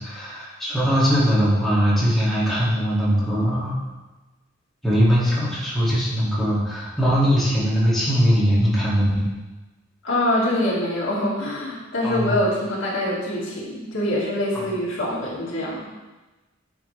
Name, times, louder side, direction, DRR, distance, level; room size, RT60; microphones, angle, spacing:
voice 1, 0.0-3.8 4.8-9.3 12.0-12.4 14.5-14.8, equal, ahead, -9 dB, 2.4 m, -21 dB
voice 2, 10.0-15.9, left 1 dB, 75° left, -6 dB, 2.2 m, -24 dB
9.4 x 5.8 x 3.4 m, 1.2 s
head